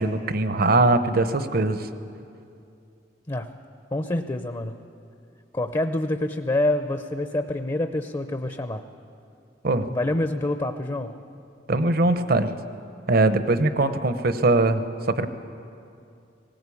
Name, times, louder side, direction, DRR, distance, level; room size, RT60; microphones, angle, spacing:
voice 1, 0.0-1.8 9.6-9.9 11.7-12.5 13.1-14.8 15.1-15.3, right 2 dB, 55° right, 10 dB, 0.9 m, -21 dB
voice 2, 3.3-3.6 3.9-4.8 5.5-8.8 9.9-11.2, left 1 dB, 25° left, 8 dB, 0.6 m, -27 dB
18.5 x 18.0 x 8.6 m, 2.6 s
head